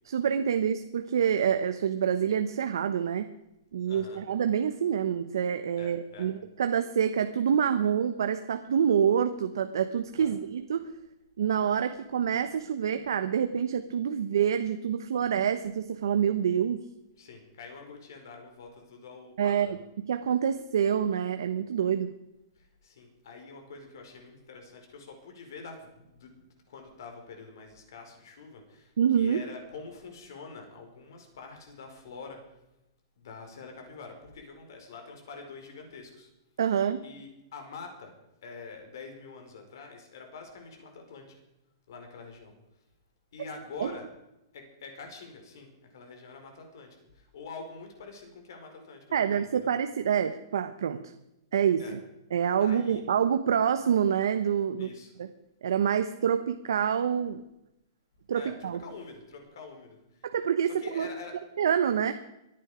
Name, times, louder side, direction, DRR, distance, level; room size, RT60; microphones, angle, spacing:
voice 1, 0.1-3.3 3.7-10.9 11.4-16.8 19.4-22.1 29.0-29.4 36.6-37.0 43.8-43.9 49.1-51.0 51.5-52.0 52.3-54.9 55.2-55.3 55.6-57.4 58.3-58.8 60.2-61.1 61.6-62.1, right 8 dB, 80° right, 9 dB, 1.0 m, -27 dB
voice 2, 3.9-4.2 5.8-6.3 10.1-10.3 17.2-19.8 22.5-32.4 33.2-36.3 37.0-38.1 38.4-41.3 41.9-42.5 43.3-44.1 44.5-49.7 51.8-52.0 52.6-53.0 54.8-55.1 58.3-60.3 60.6-61.4, left 4 dB, 65° left, 4 dB, 4.9 m, -46 dB
24.5 x 10.0 x 5.1 m, 0.91 s
hypercardioid pair, 165°, 2 cm